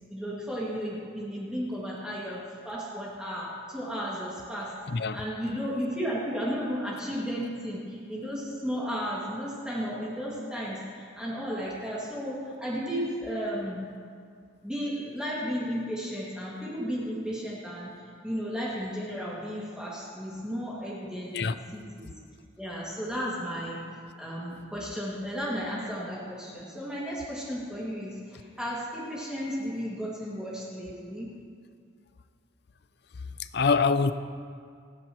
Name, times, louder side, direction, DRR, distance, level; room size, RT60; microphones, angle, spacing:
voice 1, 0.1-4.8 5.1-13.8 14.6-17.9 18.2-22.1 22.6-23.8 24.2-31.3, equal, 5° right, -7 dB, 2.3 m, -34 dB
voice 2, 33.5-34.1, left 4 dB, 55° left, 12 dB, 0.5 m, -24 dB
28.0 x 9.9 x 3.1 m, 2.2 s
head